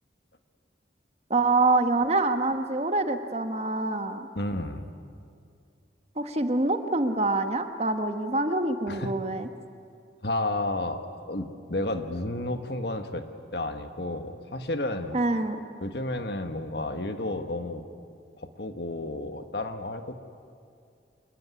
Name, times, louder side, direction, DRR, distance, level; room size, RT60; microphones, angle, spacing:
voice 1, 1.3-4.3 6.2-9.5 15.1-15.6, right 2 dB, 35° right, 7 dB, 1.3 m, -25 dB
voice 2, 4.3-4.9 8.9-9.1 10.2-13.2 13.5-15.2 15.8-17.8 18.4-20.2, left 2 dB, 60° left, 7 dB, 1.6 m, -31 dB
26.5 x 21.0 x 9.7 m, 2.3 s
head